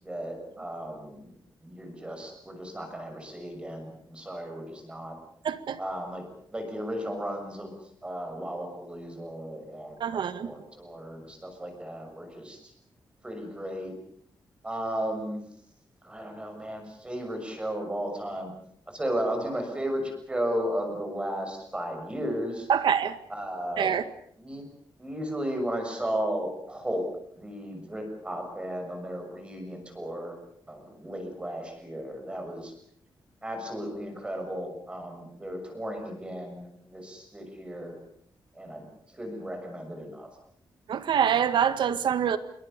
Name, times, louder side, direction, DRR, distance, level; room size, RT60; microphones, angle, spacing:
voice 1, 0.0-5.1 5.8-6.3 6.5-7.8 8.0-12.6 13.2-13.9 14.6-15.4 16.0-18.5 18.9-22.7 23.3-24.1 24.4-24.6 25.0-30.4 30.7-32.7 33.4-38.0 38.5-38.9 39.1-40.3, equal, 15° right, 5 dB, 6.4 m, -34 dB
voice 2, 5.4-5.8 10.0-10.5 22.7-23.2 23.8-24.0 40.9-42.4, right 8 dB, 80° right, 11 dB, 1.8 m, -25 dB
27.0 x 23.0 x 6.8 m, 0.65 s
wide cardioid pair, 180°, 8 cm